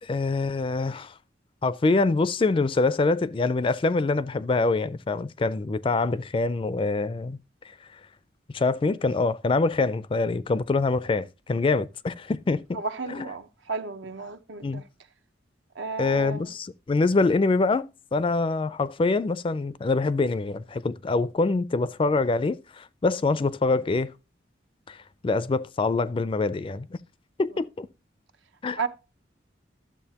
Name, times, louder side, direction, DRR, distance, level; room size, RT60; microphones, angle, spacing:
voice 1, 0.0-1.1 1.6-7.4 7.7-8.0 8.5-12.8 13.1-13.3 14.6-14.8 16.0-24.1 24.9-25.0 25.2-27.0 27.4-27.9 28.6-28.8, left 3 dB, 30° left, 0.3 m, -25 dB
voice 2, 12.7-14.8 15.7-16.5 28.8-28.9, right 4 dB, 80° right, 0.8 m, -33 dB
12.5 x 7.3 x 2.8 m
head